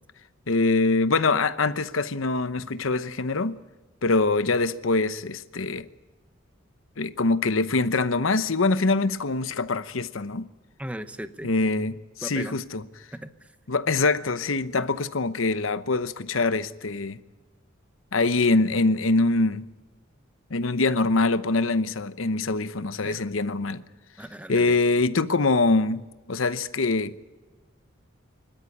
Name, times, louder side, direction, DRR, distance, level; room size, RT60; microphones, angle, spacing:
voice 1, 0.5-3.6 4.0-5.9 7.0-10.5 11.4-12.8 13.7-17.2 18.1-19.7 20.5-23.8 24.5-26.0 26.3-27.2, left 3 dB, 70° left, 0.9 m, -24 dB
voice 2, 10.8-11.5 12.2-12.6 13.1-13.6 23.0-23.3 24.2-24.8, equal, 5° right, 0.9 m, -37 dB
24.5 x 13.0 x 9.9 m
head